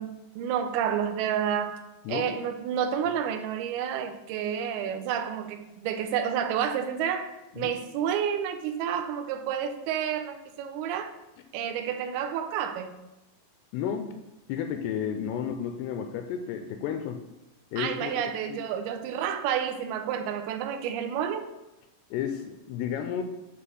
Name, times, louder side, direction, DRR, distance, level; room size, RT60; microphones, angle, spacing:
voice 1, 0.0-7.3 7.6-11.1 11.5-13.0 17.8-21.5, right 8 dB, 80° right, 8 dB, 2.3 m, -30 dB
voice 2, 13.7-14.2 14.5-17.2 17.7-18.2 18.5-18.6 22.1-23.2, left 8 dB, 85° left, 6 dB, 2.5 m, -32 dB
7.7 x 3.3 x 6.1 m, 0.97 s
omnidirectional pair, 5.0 m